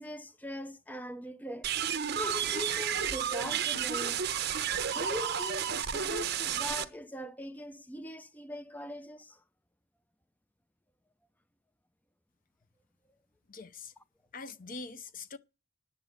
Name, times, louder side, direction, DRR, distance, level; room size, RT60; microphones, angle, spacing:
voice 1, 0.0-1.7 2.1-4.2 4.9-9.4, left 1 dB, 10° left, 0.6 m, -41 dB
sound 1, 1.6-6.8, right 8 dB, 55° right, 0.9 m, -32 dB
voice 2, 13.5-13.9 14.3-15.4, left 4 dB, 45° left, 0.7 m, -43 dB
10.0 x 7.5 x 7.7 m
head